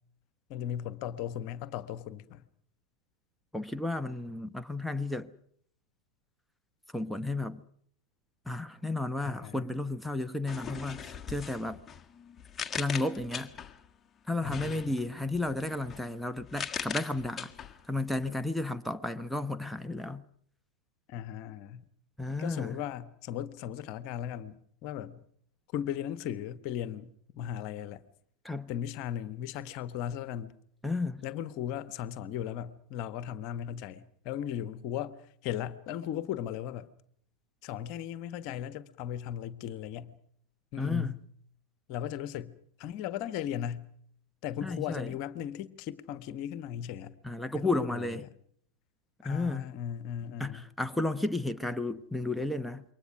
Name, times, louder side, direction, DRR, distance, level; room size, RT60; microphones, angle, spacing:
voice 1, 0.5-2.4 9.2-9.7 14.4-15.1 21.1-21.8 22.4-25.2 25.7-28.0 28.7-30.5 31.2-35.2 35.4-36.9 37.6-40.2 40.7-41.2 41.9-43.9 44.4-47.1 47.5-48.3 49.2-50.7, left 10 dB, 45° left, 1.4 m, -37 dB
voice 2, 3.5-5.3 6.9-7.6 8.5-11.8 12.7-13.5 14.3-17.5 17.9-20.2 22.2-22.8 28.4-28.7 30.8-31.2 40.8-41.2 44.6-45.1 47.2-48.2 49.2-49.7 50.4-52.8, left 2 dB, ahead, 0.9 m, -33 dB
sound 1, 10.5-13.9 14.4-18.3, left 7 dB, 20° left, 1.7 m, -41 dB
28.0 x 24.0 x 6.2 m
figure-of-eight pair, 90°, 0 cm